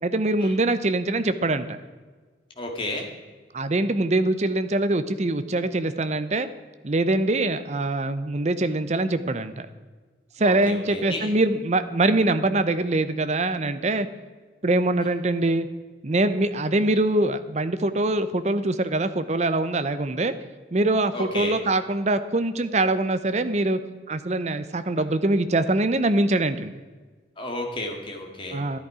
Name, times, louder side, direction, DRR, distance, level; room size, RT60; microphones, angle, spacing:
voice 1, 0.0-1.8 3.5-6.5 6.8-9.7 10.4-14.1 14.6-15.7 16.0-20.3 20.7-23.8 24.1-26.7 28.5-28.8, right 2 dB, 35° right, 11 dB, 0.7 m, -23 dB
voice 2, 2.6-3.1 10.4-11.3 21.1-21.6 27.4-28.6, left 1 dB, 30° left, 1 dB, 2.0 m, -32 dB
12.5 x 10.5 x 4.9 m, 1.4 s
head